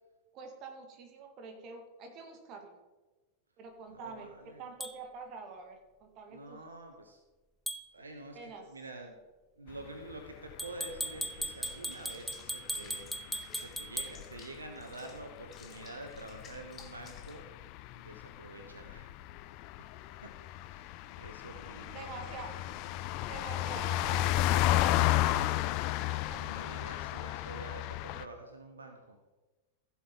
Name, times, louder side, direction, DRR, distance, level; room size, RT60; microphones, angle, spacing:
voice 1, 0.3-2.8 3.6-6.6 8.3-8.7 21.9-22.6 23.2-25.7 26.1-26.7, right 4 dB, 40° right, 4 dB, 2.0 m, -47 dB
voice 2, 3.9-4.7 6.3-7.2 7.9-9.2 9.6-17.5 17.9-19.1 20.2-20.3 20.7-23.0 26.3-29.2, right 2 dB, 75° right, 5 dB, 1.1 m, -48 dB
sound 1, 4.8-5.0 7.7-7.9 10.6-14.2, right 1 dB, ahead, 0.7 m, -38 dB
sound 2, 9.7-28.2, left 14 dB, 45° left, 0.4 m, -34 dB
Water / Bathtub (filling or washing), 11.6-17.4, left 6 dB, 25° left, 1.4 m, -56 dB
15.0 x 7.3 x 3.9 m, 1.2 s
figure-of-eight pair, 90°, 0 cm